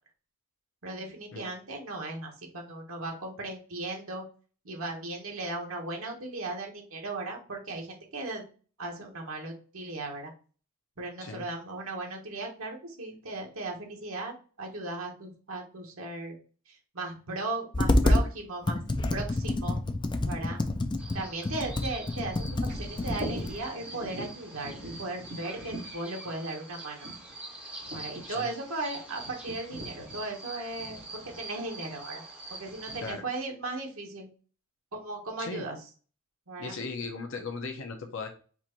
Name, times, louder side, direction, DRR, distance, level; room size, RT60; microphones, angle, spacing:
voice 1, 0.8-4.2 4.6-8.4 8.8-10.3 11.0-16.4 16.7-18.8 19.1-19.8 20.2-20.6 21.1-22.4 22.7-27.0 27.9-32.2 32.6-34.3 34.9-35.8 36.5-36.8, right 2 dB, 80° right, 1 dB, 1.3 m, -37 dB
Computer keyboard, 17.7-18.3 18.7-23.6, left 1 dB, 20° left, 0.4 m, -27 dB
sound 1, 21.0-33.1, right 2 dB, 5° right, 1.4 m, -45 dB
Bird vocalization bird call bird song, 22.7-33.2, right 1 dB, 55° right, 2.0 m, -44 dB
voice 2, 36.6-38.3, left 4 dB, 65° left, 4 dB, 0.7 m, -37 dB
4.3 x 2.6 x 4.4 m, 0.38 s
head